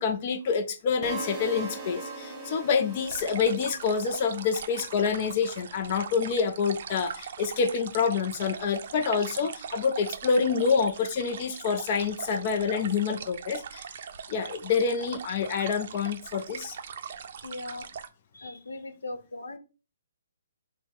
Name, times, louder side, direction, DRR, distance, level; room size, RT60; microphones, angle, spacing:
voice 1, 0.0-13.9 14.3-16.8, left 5 dB, 35° left, 0.4 m, -27 dB
sound 1, 1.0-5.1, right 3 dB, 20° right, 0.9 m, -40 dB
sound 2, 3.0-18.1, right 7 dB, 50° right, 0.5 m, -41 dB
voice 2, 17.4-17.9 18.3-19.6, left 2 dB, 85° left, 0.8 m, -39 dB
4.0 x 2.1 x 4.4 m
hypercardioid pair, 150°, 0 cm